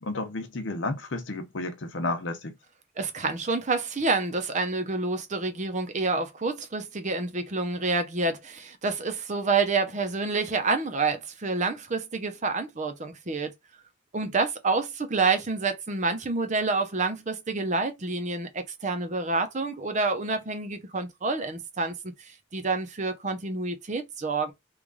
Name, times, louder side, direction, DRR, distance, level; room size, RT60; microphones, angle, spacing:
voice 1, 0.0-2.6, left 2 dB, 70° left, 0.9 m, -32 dB
voice 2, 3.0-13.5 14.1-24.5, right 3 dB, 40° right, 0.7 m, -28 dB
3.1 x 2.5 x 3.8 m
head